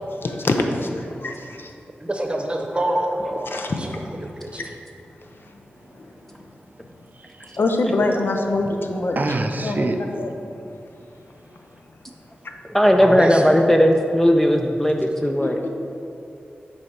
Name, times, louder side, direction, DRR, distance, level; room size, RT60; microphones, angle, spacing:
voice 1, 0.1-1.7 3.4-4.7 5.4-5.6 5.9-6.5 7.6-9.2 9.6-10.3 11.5-11.6 15.4-15.7, left 2 dB, 65° left, 4 dB, 0.5 m, -25 dB
voice 2, 2.0-3.9 4.2-4.6 12.8-13.5, right 1 dB, 25° right, 2 dB, 0.9 m, -26 dB
voice 3, 5.4-7.6 9.1-10.0 11.1-11.8, right 2 dB, 50° right, 5 dB, 0.4 m, -30 dB
voice 4, 12.7-15.6, equal, 10° left, 3 dB, 0.4 m, -17 dB
6.4 x 4.2 x 4.5 m, 2.7 s
cardioid pair, 55°, 4 cm